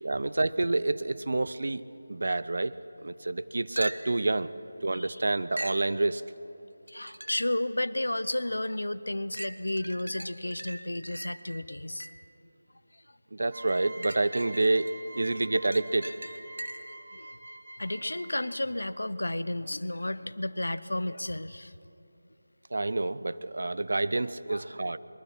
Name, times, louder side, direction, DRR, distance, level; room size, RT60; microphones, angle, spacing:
voice 1, 0.0-1.8 2.1-2.7 3.0-4.5 4.8-6.2 13.3-14.9 15.2-16.1 22.7-25.0, right 2 dB, 60° right, 15 dB, 0.7 m, -28 dB
sound 1, 3.8-4.3 5.6-5.9 6.9-7.6 8.2-8.3 9.3-12.3 13.7-14.9 15.3-17.0 20.8-20.9, right 1 dB, 85° right, 1.0 m, -41 dB
voice 2, 4.9-5.2 6.9-12.1 17.1-17.3 17.8-21.7 24.5-24.7, left 1 dB, 80° left, 16 dB, 0.7 m, -32 dB
sound 2, 13.5-18.7, right 1 dB, 40° right, 6.2 m, -46 dB
22.0 x 21.5 x 5.6 m, 2.9 s
figure-of-eight pair, 165°, 0 cm